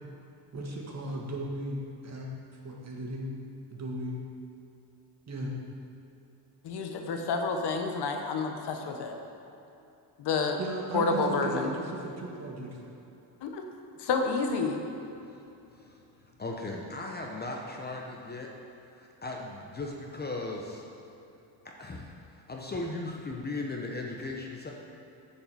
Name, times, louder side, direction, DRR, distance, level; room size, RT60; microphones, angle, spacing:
voice 1, 0.5-2.3 2.6-3.3 3.7-4.2 5.3-5.5 10.6-12.8 16.7-16.9, right 1 dB, 35° right, -1 dB, 1.7 m, -36 dB
voice 2, 6.6-9.2 10.2-10.6 10.9-11.7 13.4-13.6 14.0-14.8, left 4 dB, 65° left, 4 dB, 1.1 m, -29 dB
voice 3, 16.4-18.5 18.9-20.9 21.6-24.7, left 2 dB, 20° left, 0 dB, 0.9 m, -37 dB
9.1 x 5.5 x 6.9 m, 2.8 s
cardioid pair, 115°, 43 cm